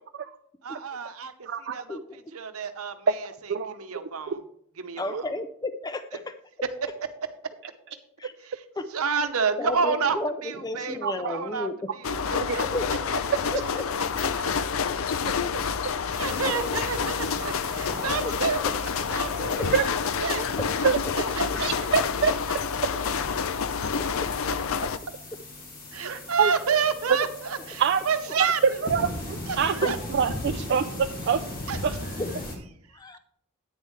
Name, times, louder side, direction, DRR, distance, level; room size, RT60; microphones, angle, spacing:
voice 1, 0.6-1.3 1.6-2.0 2.3-4.4 4.8-5.3 8.4-8.6 8.9-11.0 11.3-11.7 12.0-12.7 15.8-18.6 19.1-19.9 20.2-20.5 20.8-20.9 21.3-21.4 25.9-28.8 29.5-30.0 31.7-31.8, right 5 dB, 80° right, 8 dB, 0.9 m, -29 dB
voice 2, 1.5-1.8 3.5-3.8 4.3-4.4 5.1-5.2 11.0-11.4 12.5-12.6 19.7-19.8 20.2-20.4 20.8-21.0 21.4-22.3 26.0-26.5 27.8-28.0 28.4-30.9 31.3-31.4 31.8-32.0, right 6 dB, 55° right, 7 dB, 0.4 m, -25 dB
voice 3, 5.0-6.3 8.2-8.3 8.8-8.9 9.6-11.9 12.7-13.0 13.5-13.9 18.6-18.7 20.6-20.7 24.0-24.3 29.8-30.0 30.5-30.6 32.2-32.5 32.9-33.2, left 2 dB, 20° left, 10 dB, 0.5 m, -32 dB
sound 1, 12.0-25.0, left 6 dB, 65° left, 0.5 m, -28 dB
sound 2, 16.1-32.6, left 1 dB, 40° left, 2.4 m, -39 dB
10.0 x 9.2 x 3.2 m, 0.66 s
head